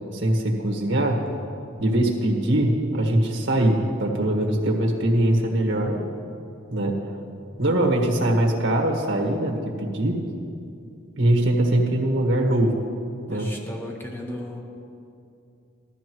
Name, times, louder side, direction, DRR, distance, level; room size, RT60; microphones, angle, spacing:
voice 1, 0.1-1.2 1.8-6.0 6.7-7.1 7.6-10.2 11.2-12.7 13.3-13.5, right 1 dB, 70° right, 1 dB, 1.6 m, -22 dB
voice 2, 13.3-14.6, left 1 dB, 10° left, -1 dB, 1.3 m, -35 dB
14.5 x 13.0 x 3.1 m, 2.5 s
head